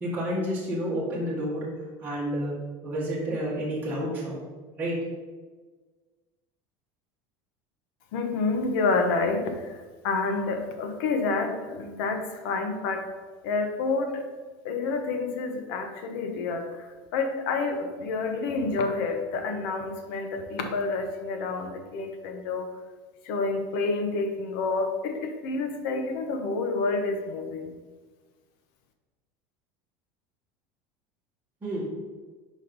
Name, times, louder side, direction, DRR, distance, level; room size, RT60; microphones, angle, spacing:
voice 1, 0.0-1.7 2.0-2.5 2.8-4.4 4.8-4.9 31.6-31.8, equal, 15° right, -8 dB, 1.7 m, -30 dB
voice 2, 8.1-9.8 10.0-13.0 13.4-14.2 14.6-22.7 23.2-27.8, left 3 dB, 75° left, 5 dB, 1.0 m, -28 dB
5.2 x 4.0 x 5.3 m, 1.4 s
cardioid pair, 155°, 12 cm